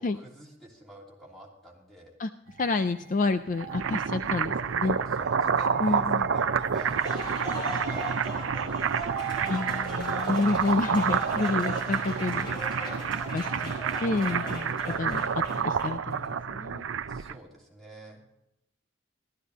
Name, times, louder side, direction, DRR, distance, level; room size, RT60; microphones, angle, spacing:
voice 1, 0.0-2.1 4.9-7.1 7.5-9.3 17.1-18.2, right 1 dB, ahead, -4 dB, 3.0 m, -48 dB
sound 1, 2.5-13.6, right 7 dB, 50° right, 0.8 m, -45 dB
voice 2, 2.6-5.0 5.8-6.3 9.4-12.6 13.3-13.7 14.0-16.9, left 3 dB, 40° left, 11 dB, 0.4 m, -29 dB
sound 2, 3.5-17.4, right 6 dB, 80° right, 0.5 m, -29 dB
Applause, 6.7-16.1, right 1 dB, 25° left, 4.9 m, -38 dB
14.5 x 13.0 x 4.1 m, 0.85 s
head